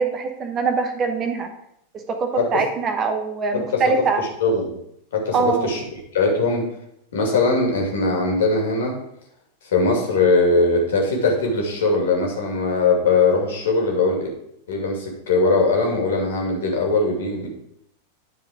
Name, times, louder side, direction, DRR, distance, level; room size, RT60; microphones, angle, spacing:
voice 1, 0.0-1.5 1.9-4.2 5.3-5.7, right 5 dB, 30° right, 6 dB, 1.0 m, -23 dB
voice 2, 4.4-4.8 5.1-5.8 6.1-6.6 7.1-9.0 9.7-14.3 14.7-17.5, left 3 dB, 60° left, 0 dB, 2.2 m, -20 dB
10.0 x 4.6 x 4.9 m, 0.76 s
figure-of-eight pair, 90°, 0 cm